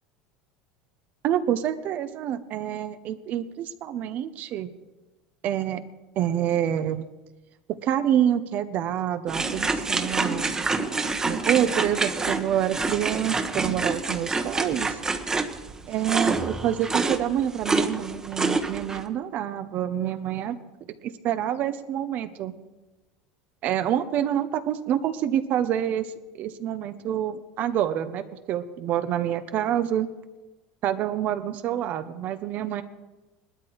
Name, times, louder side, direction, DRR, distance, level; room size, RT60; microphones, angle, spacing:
voice 1, 1.2-4.7 5.4-5.8 6.2-7.1 7.7-10.6 11.2-15.0 15.9-20.6 21.0-22.5 23.6-26.1 26.3-30.1 30.8-32.8, right 10 dB, 50° right, 10 dB, 1.0 m, -27 dB
sound 1, 9.3-19.0, right 3 dB, 15° right, 1.3 m, -27 dB
18.5 x 12.5 x 4.8 m, 1.1 s
supercardioid pair, 110°, 4 cm